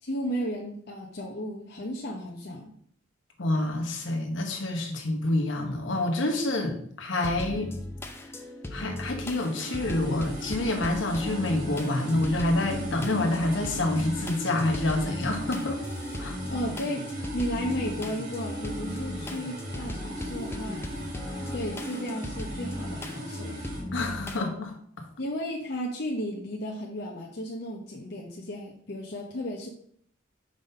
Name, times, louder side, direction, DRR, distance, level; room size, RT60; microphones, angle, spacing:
voice 1, 0.0-2.7 16.5-17.1 17.3-20.8 21.5-23.6 25.2-29.7, equal, 55° left, -1 dB, 0.7 m, -34 dB
voice 2, 3.4-7.7 8.7-15.8 16.2-16.4 23.9-25.0, left 2 dB, 70° left, 3 dB, 1.2 m, -27 dB
sound 1, 7.2-24.4, left 1 dB, 10° left, 0.5 m, -37 dB
sound 2, 9.2-23.8, right 1 dB, 55° right, 2.9 m, -39 dB
5.2 x 3.8 x 5.4 m, 0.64 s
head